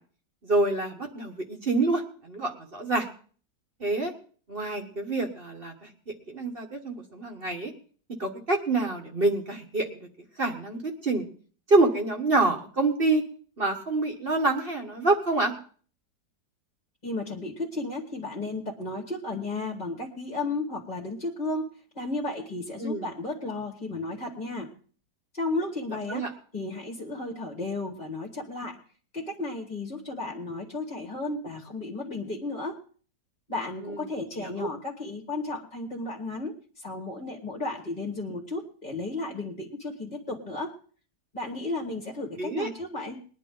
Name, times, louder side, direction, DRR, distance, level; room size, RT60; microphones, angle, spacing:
voice 1, 0.4-3.1 3.8-4.1 4.5-5.9 6.3-7.7 8.2-9.9 10.4-11.2 11.7-13.2 13.6-15.5 22.8-23.0 26.1-26.3 33.8-34.0 34.4-34.7 42.4-42.7, right 2 dB, 35° right, 2 dB, 1.4 m, -26 dB
voice 2, 17.0-24.7 25.3-26.2 26.5-28.8 29.1-32.8 33.5-40.7 41.3-43.2, left 2 dB, 25° left, 1 dB, 1.9 m, -34 dB
21.0 x 10.5 x 3.8 m, 0.43 s
omnidirectional pair, 1.9 m